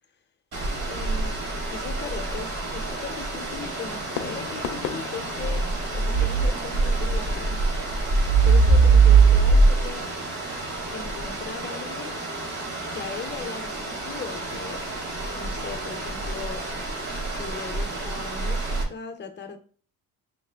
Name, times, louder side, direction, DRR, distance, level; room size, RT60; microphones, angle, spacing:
sound 1, 0.5-18.8, right 4 dB, 50° right, 1.5 m, -24 dB
voice 1, 0.8-1.3 1.7-5.7 5.9-7.7 8.4-10.1 10.9-12.1 12.9-14.8 15.4-16.6 17.3-19.6, left 6 dB, 30° left, 5 dB, 0.7 m, -38 dB
Fireworks, 3.7-8.7, left 9 dB, 80° left, 0.6 m, -39 dB
5.9 x 2.1 x 3.3 m, 0.42 s
cardioid pair, 125°, 36 cm